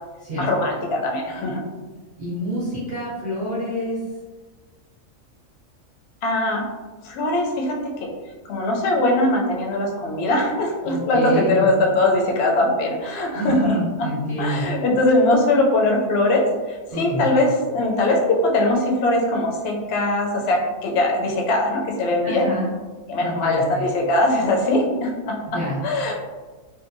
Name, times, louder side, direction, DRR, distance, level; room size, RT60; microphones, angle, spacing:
voice 1, 0.4-1.6 6.2-6.6 7.0-8.1 8.5-14.1 14.4-22.5 23.1-26.1, left 2 dB, 65° left, -1 dB, 0.7 m, -21 dB
voice 2, 2.2-4.0 10.8-11.7 13.3-14.6 16.9-17.3 22.2-22.7 23.2-23.9 25.5-25.8, equal, 40° right, -11 dB, 0.8 m, -27 dB
2.7 x 2.1 x 2.5 m, 1.3 s
omnidirectional pair, 1.4 m